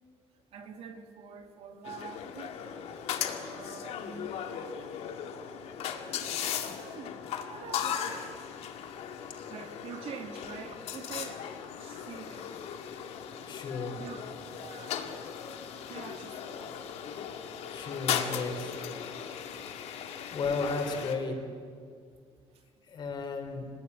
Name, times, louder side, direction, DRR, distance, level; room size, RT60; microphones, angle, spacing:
voice 1, 0.5-2.6 3.4-4.4 6.0-6.2 6.7-8.4 8.8-8.9 9.5-12.6 14.0-14.3 14.6-15.1 15.8-16.8 22.5-22.6, right 7 dB, 70° right, 5 dB, 2.6 m, -46 dB
sound 1, 1.8-21.1, left 8 dB, 85° left, 2.2 m, -37 dB
voice 2, 13.5-14.0 17.7-18.7 20.3-21.4 22.9-23.7, left 4 dB, 45° left, 4 dB, 4.2 m, -34 dB
26.0 x 20.0 x 9.7 m, 2.2 s
cardioid pair, 160°, 11 cm